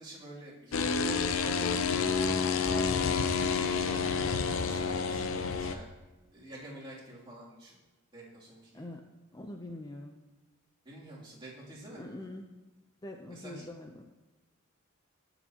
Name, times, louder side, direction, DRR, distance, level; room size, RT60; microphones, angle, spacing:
voice 1, 0.0-2.0 2.3-5.9 6.3-7.8 8.1-8.8 10.8-12.1 13.3-13.7, right 1 dB, 25° right, -7 dB, 2.8 m, -48 dB
sound 1, 0.7-5.7, left 5 dB, 75° left, 0.7 m, -29 dB
voice 2, 8.7-9.1 9.3-10.3 12.0-12.4 13.0-14.0, left 1 dB, 20° left, 3 dB, 0.6 m, -44 dB
20.5 x 6.8 x 2.9 m, 1.1 s
head